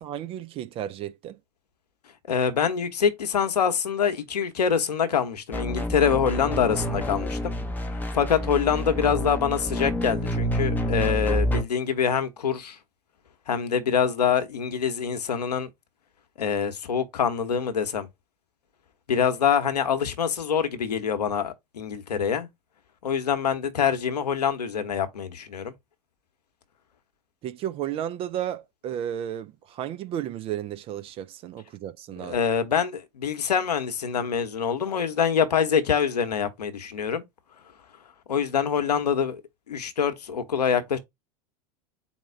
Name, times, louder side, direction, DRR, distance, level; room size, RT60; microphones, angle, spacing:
voice 1, 0.0-1.4 27.4-32.4, right 10 dB, 25° right, 0.4 m, -33 dB
voice 2, 2.3-7.6 8.1-12.8 13.5-15.7 16.4-18.1 19.1-22.5 23.0-25.7 32.2-37.2 38.3-39.4 39.7-41.0, left 7 dB, 70° left, 0.9 m, -25 dB
sound 1, 5.5-11.6, equal, 10° left, 0.7 m, -28 dB
4.3 x 2.2 x 4.4 m
figure-of-eight pair, 85°, 21 cm